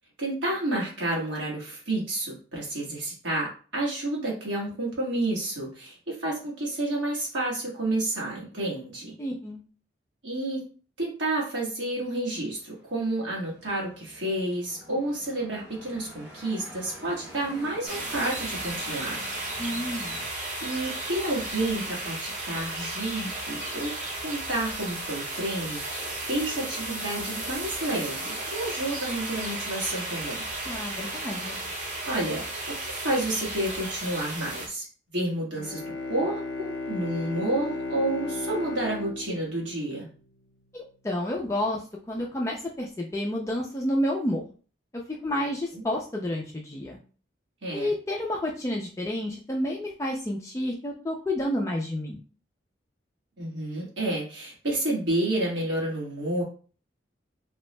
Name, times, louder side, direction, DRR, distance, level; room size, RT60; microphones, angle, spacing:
voice 1, 0.2-9.1 10.2-10.6 11.0-19.2 20.6-23.9 24.2-30.4 32.0-34.9 35.1-35.8 36.1-40.1 45.7-45.8 47.6-47.9 53.4-56.4, right 1 dB, 80° right, -4 dB, 1.3 m, -30 dB
voice 2, 9.2-9.6 19.6-20.2 30.7-31.6 40.7-44.4 45.2-47.0 47.7-52.2, left 1 dB, 15° left, -1 dB, 0.3 m, -30 dB
sound 1, 11.9-20.3, equal, 60° right, 1.1 m, -48 dB
sound 2, 17.9-34.7, right 2 dB, 40° right, 0.8 m, -34 dB
Bowed string instrument, 35.5-40.5, left 3 dB, 85° left, 0.4 m, -35 dB
3.4 x 2.0 x 3.1 m, 0.38 s
head